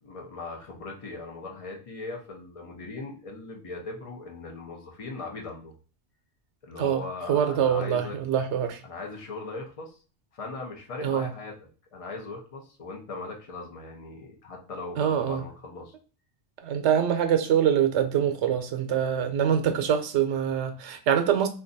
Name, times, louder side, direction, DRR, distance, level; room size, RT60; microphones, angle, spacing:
voice 1, 0.0-5.7 6.6-8.2 8.8-10.0 10.3-15.9, left 3 dB, 35° left, 0.7 m, -39 dB
voice 2, 7.3-8.8 11.0-11.3 15.0-15.4 16.6-21.5, right 9 dB, 80° right, 0.9 m, -24 dB
2.6 x 2.3 x 3.9 m
omnidirectional pair, 1.2 m